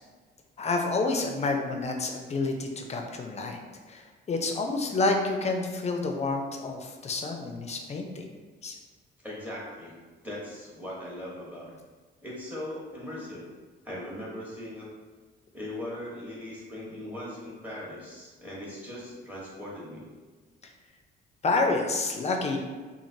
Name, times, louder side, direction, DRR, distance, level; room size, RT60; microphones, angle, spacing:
voice 1, 0.6-3.6 3.9-8.4 8.6-8.8 21.4-22.6, left 3 dB, 35° left, 3 dB, 0.5 m, -29 dB
voice 2, 9.2-10.0 10.2-11.8 12.2-13.5 13.8-14.9 15.5-20.1, left 1 dB, 10° right, -6 dB, 1.0 m, -39 dB
3.1 x 2.4 x 2.6 m, 1.4 s
cardioid pair, 90°, 20 cm